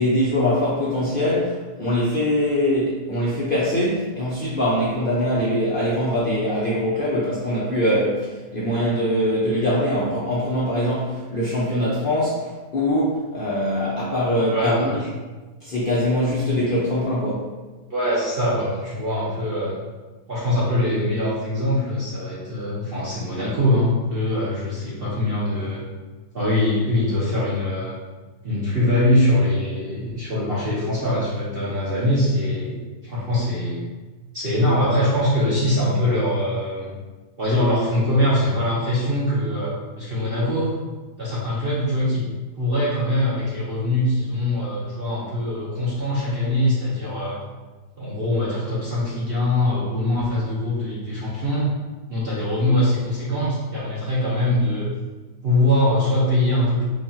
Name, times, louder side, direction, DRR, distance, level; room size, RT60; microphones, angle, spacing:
voice 1, 0.0-15.0 15.6-17.5, equal, 60° left, -9 dB, 0.5 m, -22 dB
voice 2, 14.5-15.1 17.9-19.8 20.3-25.8 26.3-28.0 28.4-32.8 33.0-33.8 34.3-36.9 37.4-40.7 41.2-42.2 42.6-47.4 48.0-51.7 52.1-54.9 55.4-56.8, left 1 dB, 50° right, -9 dB, 0.7 m, -22 dB
4.8 x 2.4 x 2.7 m, 1.2 s
omnidirectional pair, 1.9 m